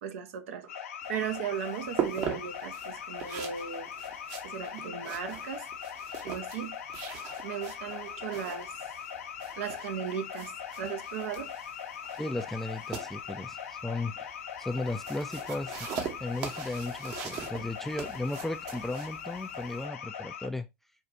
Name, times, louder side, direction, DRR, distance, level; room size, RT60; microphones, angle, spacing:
voice 1, 0.0-0.7 1.1-3.9 4.4-5.7 6.2-6.8 7.4-8.8 9.6-10.5 10.8-11.5, right 8 dB, 65° right, 0.7 m, -36 dB
sound 1, 0.7-20.5, left 8 dB, 70° left, 0.7 m, -41 dB
sound 2, 1.0-19.9, right 8 dB, 45° right, 1.0 m, -41 dB
voice 2, 12.2-15.9 16.2-20.7, left 2 dB, 5° left, 0.4 m, -35 dB
4.5 x 2.4 x 2.7 m
hypercardioid pair, 85°, 8 cm